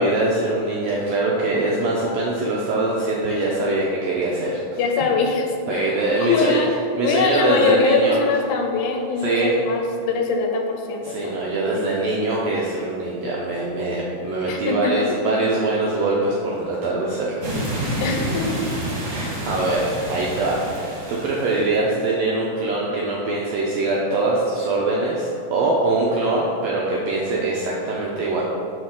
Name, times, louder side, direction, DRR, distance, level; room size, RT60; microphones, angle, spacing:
voice 1, 0.0-4.6 5.7-6.6 7.0-8.2 9.2-9.6 11.0-17.3 17.8-18.0 19.1-28.4, right 2 dB, 80° right, -4 dB, 1.5 m, -23 dB
voice 2, 4.8-6.7 7.0-11.8 14.5-15.0 18.0-18.7, left 4 dB, 80° left, 3 dB, 2.0 m, -23 dB
sound 1, 17.4-21.8, equal, 40° right, 1.5 m, -28 dB
6.3 x 5.5 x 3.7 m, 2.7 s
omnidirectional pair, 3.7 m